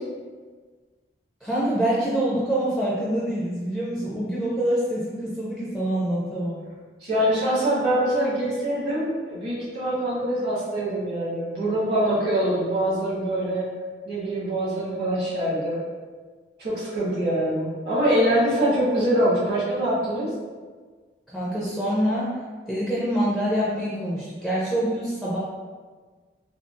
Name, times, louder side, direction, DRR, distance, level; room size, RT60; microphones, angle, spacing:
voice 1, 1.4-6.7 21.3-22.4 22.7-25.4, right 1 dB, ahead, -8 dB, 0.4 m, -25 dB
voice 2, 7.0-13.7 14.0-15.8 16.6-20.3, right 1 dB, 60° right, -9 dB, 1.4 m, -24 dB
3.6 x 2.3 x 2.5 m, 1.5 s
head